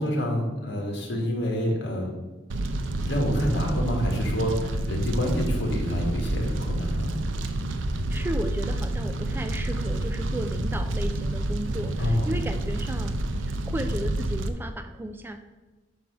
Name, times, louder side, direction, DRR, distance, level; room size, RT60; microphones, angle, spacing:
voice 1, 0.0-2.1 3.1-7.1 12.0-12.3, equal, 65° left, 1 dB, 1.6 m, -27 dB
Fire, 2.5-14.5, right 1 dB, 90° right, 0.6 m, -28 dB
voice 2, 8.1-15.4, right 1 dB, 10° right, 8 dB, 0.3 m, -34 dB
5.4 x 4.6 x 6.0 m, 1.2 s
head